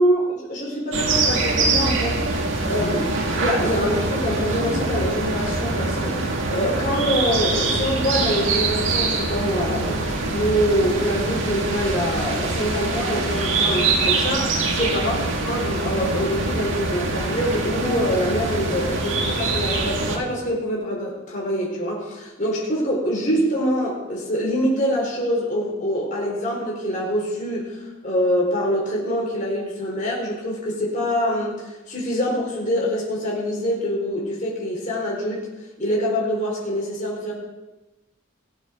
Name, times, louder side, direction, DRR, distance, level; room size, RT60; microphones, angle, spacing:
voice 1, 0.0-2.2 2.7-10.1 10.3-27.7 28.0-35.5 35.8-37.3, equal, 40° left, -3 dB, 4.2 m, -25 dB
sound 1, 0.9-20.2, right 3 dB, 70° right, 1.9 m, -24 dB
18.0 x 7.4 x 6.3 m, 1.1 s
head